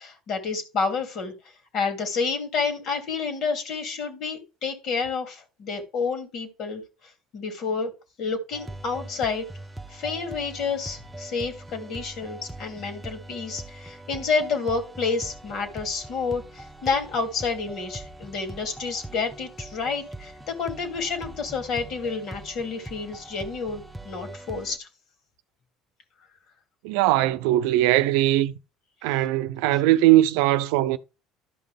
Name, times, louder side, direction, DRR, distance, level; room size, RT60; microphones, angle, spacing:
voice 1, 0.0-1.3 1.7-6.8 7.3-7.9 8.2-9.4 9.9-24.9, left 4 dB, 60° left, 2.8 m, -29 dB
sound 1, 8.5-24.8, right 1 dB, 5° right, 1.1 m, -42 dB
voice 2, 26.8-28.5 29.0-31.0, right 15 dB, 80° right, 0.6 m, -20 dB
12.5 x 5.6 x 3.5 m
supercardioid pair, 80°, 0 cm